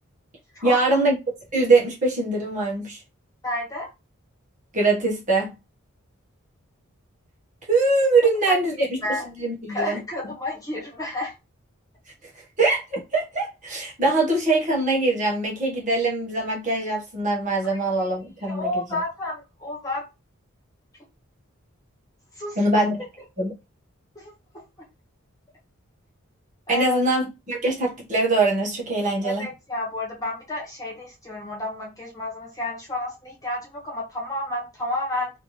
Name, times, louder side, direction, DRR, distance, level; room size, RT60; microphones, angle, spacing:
voice 1, 0.6-1.1 1.5-3.0 4.7-5.5 7.7-8.7 9.1-10.0 12.6-18.7 22.6-23.0 23.4-23.5 26.7-29.4, right 2 dB, 35° right, 1.1 m, -22 dB
voice 2, 3.4-3.9 8.5-9.3 9.7-11.3 17.6-17.8 18.5-20.1 22.4-22.8 24.1-24.3 26.7-27.1 29.2-35.3, left 1 dB, 15° left, 1.3 m, -31 dB
3.3 x 2.6 x 3.0 m
head